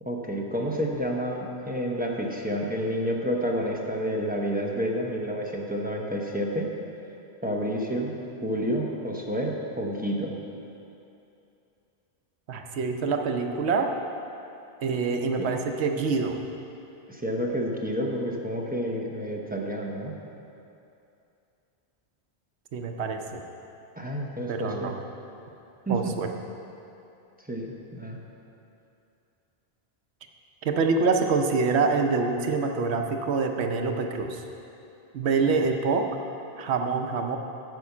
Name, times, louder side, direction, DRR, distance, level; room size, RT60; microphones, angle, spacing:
voice 1, 0.0-6.7 7.4-8.1 8.4-10.3 15.4-15.5 17.1-20.1 24.0-24.9 25.9-26.1 27.4-28.2, equal, 10° right, -1 dB, 0.8 m, -29 dB
voice 2, 12.5-13.9 14.8-16.4 22.7-23.4 24.5-24.9 25.9-26.3 30.6-34.4 35.1-36.0 36.6-37.4, right 4 dB, 80° right, 4 dB, 1.0 m, -25 dB
9.3 x 5.2 x 7.0 m, 2.8 s
omnidirectional pair, 1.1 m